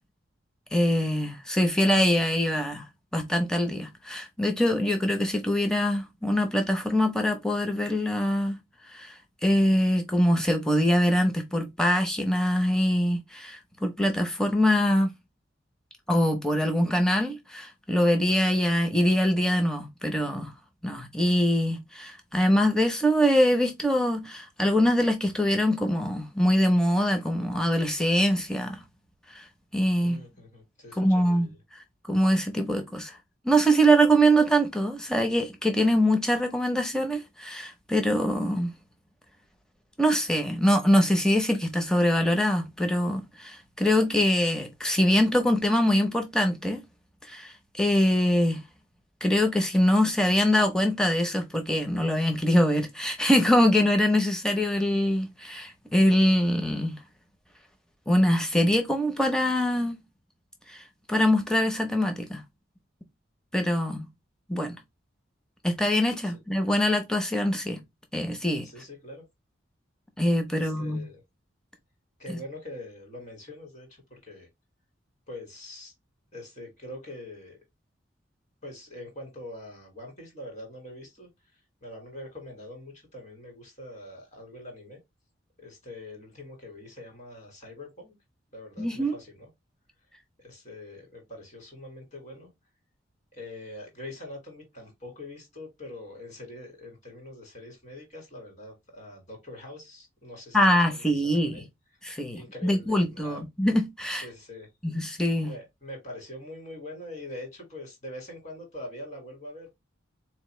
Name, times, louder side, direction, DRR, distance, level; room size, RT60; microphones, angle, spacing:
voice 1, 0.7-2.8 3.1-8.6 8.9-15.1 16.1-20.5 20.8-28.8 29.3-29.4 29.7-30.2 31.0-31.5 32.1-33.2 33.4-38.7 40.0-46.8 47.2-48.6 49.2-57.0 58.1-60.0 60.7-60.8 61.1-62.4 63.5-64.1 64.5-64.7 65.6-67.8 68.1-68.7 70.2-71.0 88.8-89.1 100.5-101.6 102.0-104.3 104.8-105.5, equal, 5° left, 0.6 m, -23 dB
voice 2, 30.0-31.6 66.2-66.3 68.6-69.2 70.5-71.2 72.2-74.5 75.3-75.9 76.3-77.6 78.6-81.3 81.8-85.0 85.6-88.1 88.5-89.5 90.4-92.5 93.3-101.7 102.3-103.4 104.1-104.7 105.4-109.7, left 1 dB, 35° left, 1.9 m, -43 dB
3.9 x 2.9 x 3.1 m
head